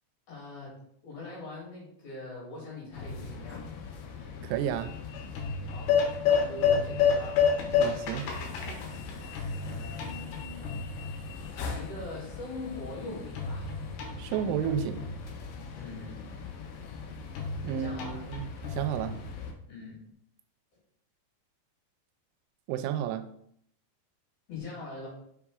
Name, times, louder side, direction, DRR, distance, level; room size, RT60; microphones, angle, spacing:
voice 1, 0.3-3.6 5.7-5.9 6.2-7.5 9.2-10.8 11.5-13.7 15.7-16.3 17.7-18.2 19.0-19.2 19.7-20.0 24.5-25.1, left 2 dB, 55° left, -6 dB, 4.1 m, -42 dB
sound 1, 2.9-19.5, left 7 dB, 85° left, 3.0 m, -32 dB
sound 2, 2.9-4.9 5.2-11.7 13.4-15.7 17.4-19.7, left 2 dB, 70° left, 2.8 m, -39 dB
voice 2, 4.4-4.9 7.8-8.3 14.2-15.1 17.6-19.2 22.7-23.2, right 9 dB, 90° right, 9 dB, 3.0 m, -32 dB
6.7 x 5.8 x 2.4 m, 0.69 s
omnidirectional pair, 5.3 m